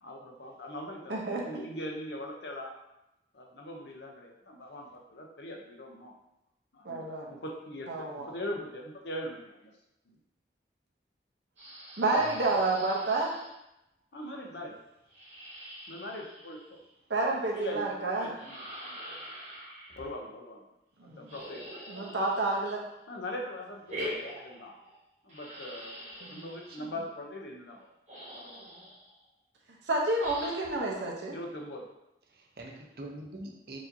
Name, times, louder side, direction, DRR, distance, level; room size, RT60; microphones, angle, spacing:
voice 1, 0.0-2.7 3.3-6.1 6.7-9.7 10.1-10.2 14.1-14.8 15.9-16.8 17.5-19.2 20.0-20.6 21.0-21.8 23.1-24.7 25.2-27.9 28.3-28.6 31.3-31.9, left 1 dB, 75° left, 1 dB, 0.7 m, -41 dB
voice 2, 1.1-1.4 6.8-7.3 7.9-8.3 12.0-13.3 17.1-18.3 21.0-21.3 21.9-22.8 26.2-26.4 29.9-31.4, right 2 dB, 85° right, -1 dB, 0.8 m, -29 dB
sound 1, 11.6-13.5 15.1-16.9 18.3-20.1 21.2-22.9 23.8-25.0 25.3-26.9 27.8-27.9 28.1-29.1 30.2-30.8, equal, 40° right, 1.1 m, -44 dB
voice 3, 32.3-33.8, right 1 dB, 60° right, 1 dB, 0.6 m, -44 dB
4.7 x 2.7 x 2.7 m, 0.89 s
head